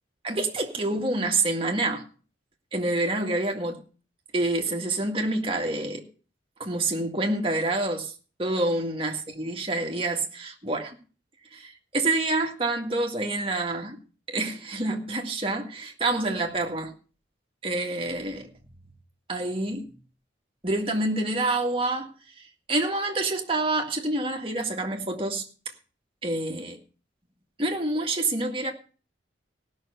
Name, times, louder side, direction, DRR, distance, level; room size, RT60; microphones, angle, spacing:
voice 1, 0.2-2.0 2.7-3.8 4.3-6.0 6.6-8.1 8.4-11.0 11.5-14.0 14.3-16.9 17.6-18.5 19.3-19.9 20.6-22.1 22.7-25.5 26.2-26.8 27.6-28.7, right 2 dB, 30° right, 2.0 m, -27 dB
17.0 x 6.5 x 6.7 m
head